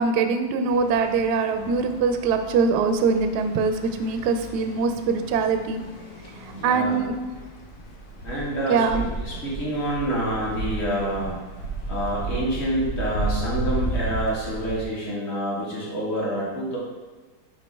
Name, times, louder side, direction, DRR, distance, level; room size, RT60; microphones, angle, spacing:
voice 1, 0.0-5.8 6.6-7.1 8.7-9.0, right 5 dB, 70° right, 7 dB, 1.0 m, -23 dB
sound 1, 0.7-14.8, right 2 dB, 70° left, 1.6 m, -34 dB
voice 2, 6.5-7.0 8.2-11.4 11.9-16.8, right 1 dB, 35° left, -5 dB, 1.8 m, -27 dB
6.0 x 5.1 x 3.3 m, 1.3 s
omnidirectional pair, 2.1 m